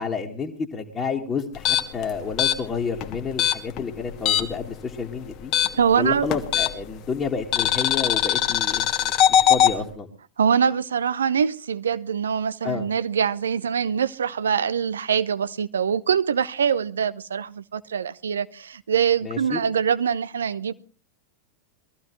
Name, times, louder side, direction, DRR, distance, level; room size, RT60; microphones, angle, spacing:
voice 1, 0.0-5.5 6.0-10.1 12.6-12.9 19.2-19.6, left 5 dB, 20° left, -2 dB, 1.8 m, -30 dB
sound 1, 1.5-4.7 4.9-7.0 7.5-9.7, left 10 dB, 40° left, 1.3 m, -21 dB
voice 2, 5.8-6.3 10.4-20.7, right 7 dB, 70° right, 15 dB, 0.8 m, -24 dB
22.5 x 14.5 x 3.1 m, 0.36 s
figure-of-eight pair, 90°, 0 cm